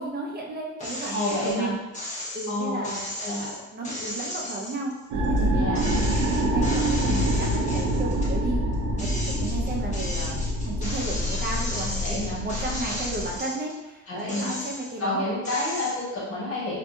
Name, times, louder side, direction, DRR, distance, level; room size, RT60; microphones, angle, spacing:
voice 1, 0.0-1.8 2.1-3.1 3.7-6.0 6.4-8.6 9.0-15.3, right 2 dB, 30° right, -2 dB, 0.6 m, -33 dB
sound 1, 0.8-1.6 1.9-5.4 5.7-8.3 8.7-13.8 14.2-15.0 15.4-16.0, left 1 dB, 25° left, 0.8 m, -35 dB
voice 2, 1.1-1.8 2.5-3.6 5.6-5.9 12.0-12.4 14.1-14.5 15.0-16.8, left 1 dB, 50° left, -7 dB, 1.4 m, -29 dB
sound 2, 5.1-13.4, equal, 85° right, 0.5 m, -26 dB
2.6 x 2.6 x 2.3 m, 1.0 s
cardioid pair, 90°, 30 cm